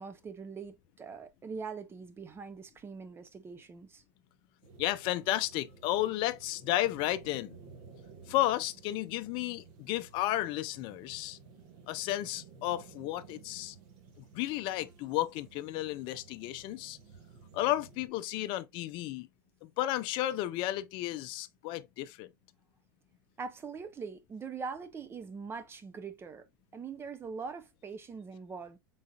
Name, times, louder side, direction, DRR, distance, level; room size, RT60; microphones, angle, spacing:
voice 1, 0.0-4.0 23.4-26.4 26.7-28.8, right 5 dB, 20° right, 0.6 m, -42 dB
sound 1, 4.6-18.1, right 5 dB, 60° right, 1.5 m, -55 dB
voice 2, 4.8-7.5 8.3-11.4 11.9-13.8 14.2-17.0 17.5-19.3 19.6-22.3, left 15 dB, 45° left, 0.5 m, -33 dB
3.9 x 3.9 x 2.3 m
hypercardioid pair, 105°, 11 cm